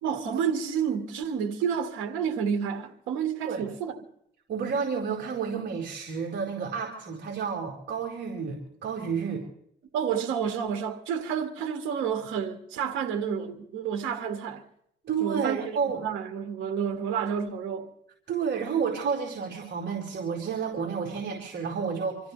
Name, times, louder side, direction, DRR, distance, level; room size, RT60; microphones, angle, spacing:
voice 1, 0.0-4.0 9.9-14.6 15.2-15.8 16.0-17.9, right 7 dB, 90° right, 1.9 m, -30 dB
voice 2, 4.5-9.4 15.0-16.0 18.3-22.2, right 6 dB, 60° right, 4.5 m, -30 dB
27.0 x 15.0 x 3.4 m
cardioid pair, 90°, 20 cm